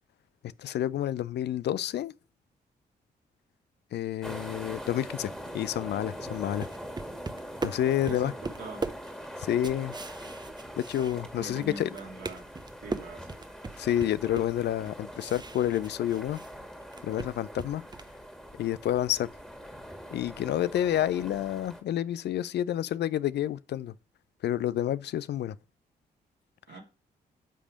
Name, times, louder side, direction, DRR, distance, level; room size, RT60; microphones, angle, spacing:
voice 1, 0.6-2.1 3.9-6.7 7.6-8.3 9.4-9.9 10.8-11.9 13.8-16.4 17.0-17.8 18.6-19.3 20.1-23.9 24.4-25.6, left 11 dB, 65° left, 0.4 m, -29 dB
sound 1, 4.2-21.8, equal, 5° left, 1.9 m, -43 dB
sound 2, 6.3-11.6 11.9-16.5 16.8-18.2, right 3 dB, 25° right, 0.7 m, -39 dB
voice 2, 11.4-12.5 12.8-13.3 26.7-26.8, right 2 dB, 75° right, 2.3 m, -42 dB
10.0 x 3.4 x 5.0 m
supercardioid pair, 50°, 19 cm